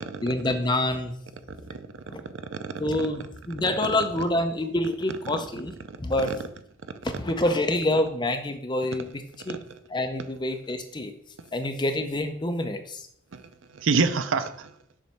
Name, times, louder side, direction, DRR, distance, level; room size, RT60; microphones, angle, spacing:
voice 1, 0.2-1.1 2.1-2.2 2.8-5.7 6.0-6.3 7.0-9.6 9.9-11.1 11.5-13.1, left 1 dB, 20° left, 7 dB, 0.5 m, -27 dB
voice 2, 1.5-1.9 2.5-2.7 5.9-6.0 9.5-9.6 13.3-13.4 13.7-14.7, right 4 dB, 70° right, 10 dB, 0.5 m, -27 dB
7.2 x 3.1 x 5.7 m, 0.68 s
head